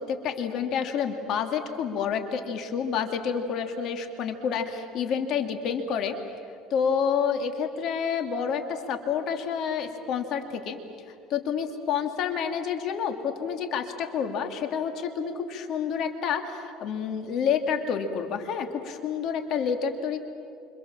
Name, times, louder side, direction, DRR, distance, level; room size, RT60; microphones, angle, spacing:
voice 1, 0.0-6.2 6.7-10.8 11.3-20.2, left 7 dB, 55° left, 6 dB, 2.6 m, -29 dB
29.0 x 27.5 x 7.4 m, 2.5 s
cardioid pair, 125°, 0 cm